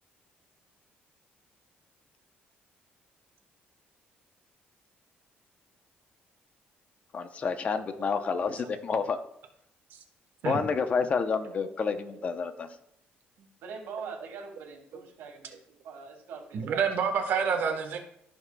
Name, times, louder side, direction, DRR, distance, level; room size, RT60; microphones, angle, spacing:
voice 1, 7.1-9.2 10.4-12.7, left 5 dB, 40° left, 9 dB, 0.8 m, -29 dB
voice 2, 13.6-17.0, right 5 dB, 85° right, 1 dB, 2.2 m, -43 dB
voice 3, 16.5-18.0, right 6 dB, 65° right, 5 dB, 1.3 m, -28 dB
16.0 x 5.8 x 2.3 m, 0.71 s
cardioid pair, 135°, 4 cm